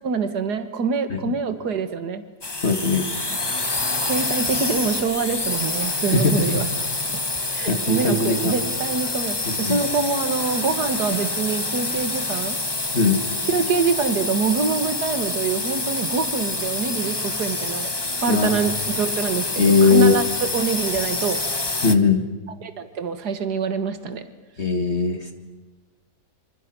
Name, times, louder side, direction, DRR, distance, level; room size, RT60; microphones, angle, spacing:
voice 1, 0.0-2.2 3.7-6.7 7.5-12.6 13.5-17.9 18.2-20.3 20.5-21.4 22.6-24.2, right 5 dB, 70° right, 10 dB, 2.2 m, -25 dB
sound 1, 2.4-22.0, left 2 dB, 15° left, 1.1 m, -27 dB
voice 2, 2.6-3.1 6.1-6.3 7.7-8.5 9.4-9.8 12.9-13.2 18.3-18.6 19.6-20.1 21.8-22.2 24.6-25.3, left 4 dB, 40° left, 6 dB, 2.3 m, -19 dB
27.0 x 26.5 x 6.2 m, 1.2 s
omnidirectional pair, 1.8 m